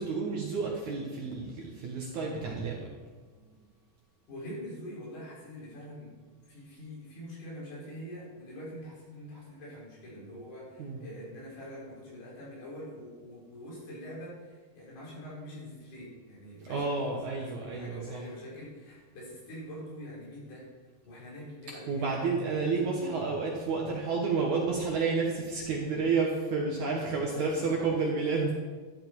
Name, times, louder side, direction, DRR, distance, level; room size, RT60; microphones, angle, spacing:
voice 1, 0.0-2.8 10.8-11.0 16.7-18.2 21.9-28.5, right 4 dB, 60° right, -1 dB, 2.1 m, -30 dB
voice 2, 4.3-6.1 6.4-20.7 21.0-22.2 22.7-23.2 27.0-28.1, equal, 70° left, -6 dB, 6.7 m, -44 dB
13.0 x 10.0 x 4.6 m, 1.4 s
omnidirectional pair, 4.8 m